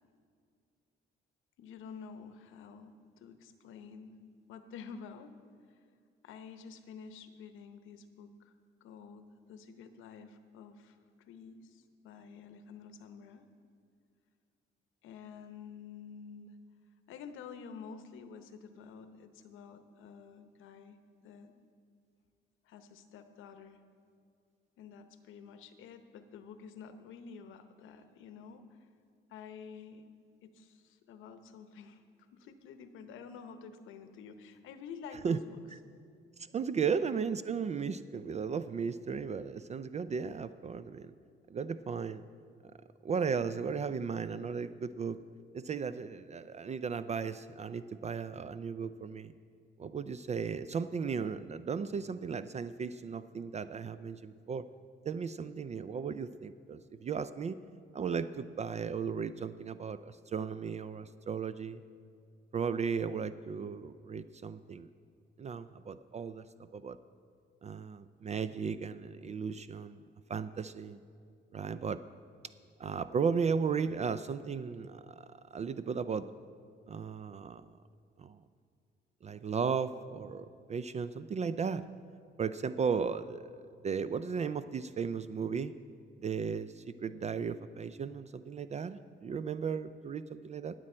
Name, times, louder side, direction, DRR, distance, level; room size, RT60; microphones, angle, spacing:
voice 1, 1.6-4.2 4.5-5.3 6.2-8.5 8.8-11.0 11.3-13.5 15.0-16.5 17.1-21.0 21.2-21.6 22.6-23.8 24.8-28.9 29.3-30.0 30.4-32.0 32.3-35.6 36.8-37.0, left 6 dB, 85° left, 9 dB, 0.8 m, -49 dB
voice 2, 36.5-41.1 41.5-42.2 43.0-45.2 45.5-49.3 49.8-54.6 55.1-57.6 57.9-61.8 62.5-64.9 65.4-66.4 66.7-67.0 67.6-70.0 70.3-71.0 71.5-72.0 72.8-76.3 76.9-77.7 78.2-78.4 79.2-81.9 82.4-83.6 83.8-85.7 86.2-90.7, right 6 dB, 35° right, 13 dB, 0.4 m, -35 dB
19.0 x 7.6 x 4.4 m, 2.3 s
cardioid pair, 90°, 20 cm